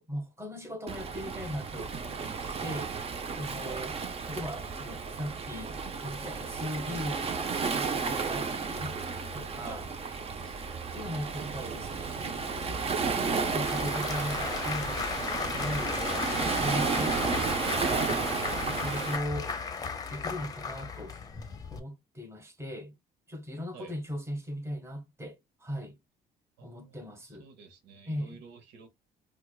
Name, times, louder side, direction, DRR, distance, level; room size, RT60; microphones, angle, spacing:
voice 1, 0.0-2.9 3.4-4.0 4.3-9.0 9.3-9.9 10.4-10.5 10.9-12.4 13.1-16.1 16.3-17.2 18.1-19.5 20.1-21.2 21.7-23.0 23.3-26.0 26.6-27.5 28.1-28.4, equal, 15° right, 1.1 m, -38 dB
Waves surf, 0.9-19.2, right 5 dB, 35° right, 0.6 m, -33 dB
Applause / Crowd, 12.2-21.8, left 5 dB, 20° left, 0.7 m, -35 dB
voice 2, 26.6-28.9, right 7 dB, 85° right, 0.9 m, -50 dB
4.4 x 2.3 x 2.3 m
cardioid pair, 110°, 17 cm